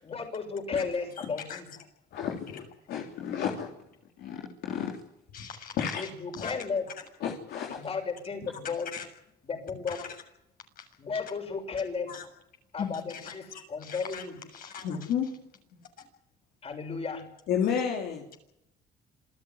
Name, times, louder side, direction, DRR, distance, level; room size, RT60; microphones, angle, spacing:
voice 1, 0.0-1.7 5.9-6.9 7.7-8.9 9.4-10.0 11.0-12.1 12.7-14.4 16.6-17.3, left 5 dB, 35° left, 5 dB, 6.6 m, -34 dB
voice 2, 2.1-3.7 4.2-5.0 5.4-5.5 5.8-6.0 7.2-7.8 8.4-8.5 14.8-15.3 17.5-18.2, left 8 dB, 75° left, 1 dB, 3.3 m, -31 dB
voice 3, 5.3-5.8 6.4-6.5 8.9-9.0 9.9-10.1 10.8-10.9 12.1-12.3 12.8-13.0 13.2-14.2 14.5-14.9, left 7 dB, 55° left, 4 dB, 7.1 m, -40 dB
27.0 x 14.5 x 9.5 m, 0.80 s
cardioid pair, 110°, 17 cm